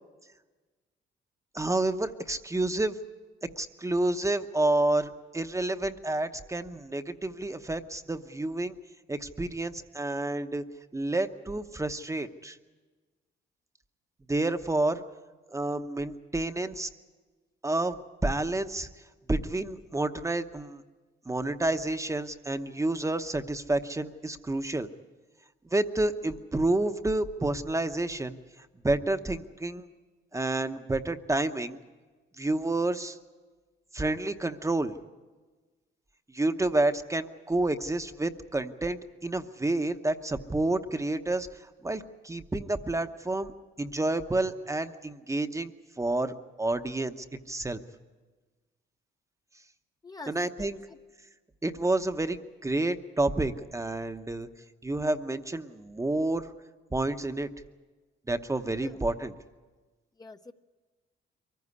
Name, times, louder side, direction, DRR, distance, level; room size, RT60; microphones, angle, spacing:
voice 1, 1.5-3.0 3.6-8.8 9.1-10.6 10.9-12.6 14.3-15.0 15.5-16.9 17.6-18.9 19.3-20.8 21.3-24.9 25.7-29.8 30.3-31.8 32.4-33.2 33.9-34.9 36.3-41.5 41.8-45.7 46.0-47.8 50.3-50.8 51.6-54.5 54.8-56.5 56.9-57.5 58.3-59.3, right 2 dB, 15° right, 8 dB, 0.9 m, -29 dB
voice 2, 50.0-51.0 58.8-59.0 60.2-60.5, left 3 dB, 20° left, 6 dB, 0.7 m, -46 dB
23.0 x 15.0 x 9.8 m, 1.3 s
cardioid pair, 90°, 20 cm